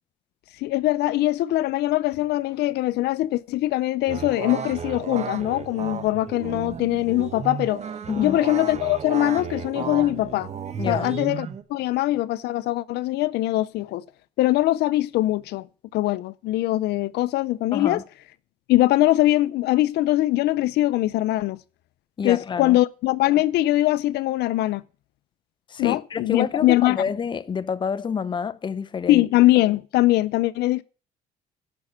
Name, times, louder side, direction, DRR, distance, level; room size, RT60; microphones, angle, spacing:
voice 1, 0.6-7.8 8.2-10.5 10.9-14.0 14.4-15.7 15.9-18.0 18.7-21.6 22.2-24.8 25.8-27.0 29.1-30.8, left 16 dB, 80° left, 0.5 m, -22 dB
sound 1, 4.1-11.6, right 7 dB, 40° right, 1.3 m, -33 dB
voice 2, 10.8-11.1 17.7-18.0 22.2-22.8 25.7-29.2, left 6 dB, 30° left, 0.6 m, -28 dB
10.5 x 6.1 x 7.4 m
cardioid pair, 110°, 17 cm